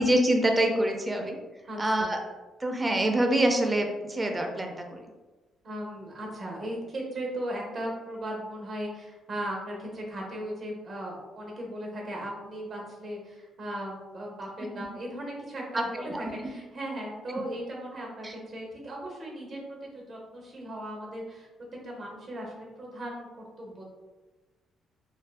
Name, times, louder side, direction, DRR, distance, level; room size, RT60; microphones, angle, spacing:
voice 1, 0.0-1.4 1.8-2.2 2.6-5.0 15.7-16.3 18.2-18.3, right 1 dB, 20° right, 3 dB, 0.4 m, -25 dB
voice 2, 1.7-2.1 5.6-21.5 21.8-23.8, right 1 dB, 45° right, -1 dB, 0.7 m, -37 dB
2.5 x 2.2 x 2.2 m, 1.2 s
cardioid pair, 90°, 0 cm